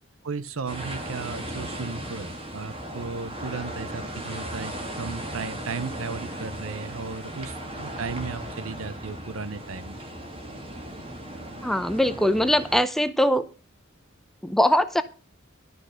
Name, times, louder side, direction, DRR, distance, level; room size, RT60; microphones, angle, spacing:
voice 1, 0.2-10.0, right 4 dB, 90° right, 0.7 m, -35 dB
sound 1, 0.7-12.8, right 1 dB, 30° right, 2.2 m, -37 dB
voice 2, 11.6-13.5 14.4-15.0, equal, ahead, 0.6 m, -21 dB
12.5 x 6.5 x 6.4 m
head